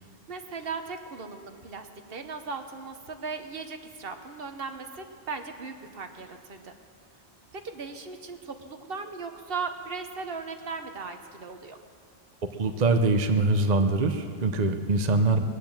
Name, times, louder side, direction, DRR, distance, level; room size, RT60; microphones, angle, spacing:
voice 1, 0.0-6.7 7.5-11.8, right 4 dB, 65° right, 6 dB, 1.2 m, -37 dB
voice 2, 12.6-15.4, right 3 dB, 45° right, 6 dB, 0.8 m, -23 dB
20.0 x 8.7 x 7.3 m, 2.4 s
omnidirectional pair, 1.0 m